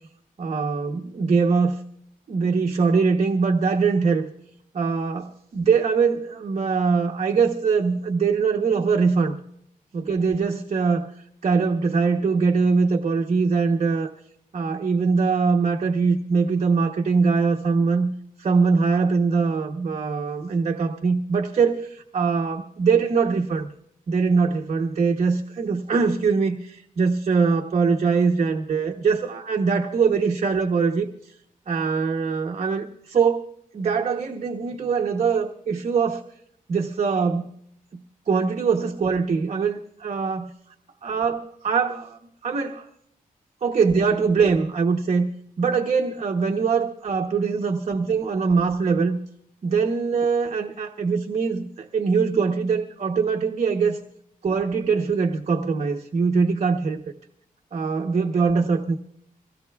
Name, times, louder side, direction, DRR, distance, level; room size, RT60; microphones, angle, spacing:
voice 1, 0.4-1.8 2.3-4.2 4.7-9.3 9.9-11.1 11.4-14.1 14.5-18.1 18.4-23.7 24.1-31.3 31.7-33.5 33.7-36.2 36.7-37.5 37.9-38.0 38.3-40.5 41.0-42.9 43.6-45.3 45.6-49.2 49.6-54.0 54.4-57.0 57.7-59.0, right 5 dB, 45° right, 2 dB, 0.9 m, -22 dB
24.0 x 17.0 x 2.3 m, 0.71 s
wide cardioid pair, 155°, 15 cm